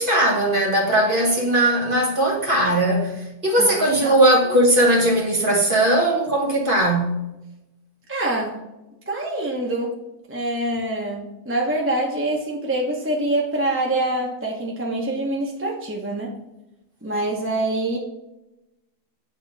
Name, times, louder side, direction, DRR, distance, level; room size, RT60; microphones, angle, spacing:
voice 1, 0.0-7.2, right 1 dB, 35° right, 1.5 m, -19 dB
voice 2, 8.1-8.6 9.1-10.0 10.3-16.4 17.0-18.0, right 1 dB, 10° right, 0.8 m, -25 dB
8.6 x 3.0 x 4.1 m
omnidirectional pair, 1.5 m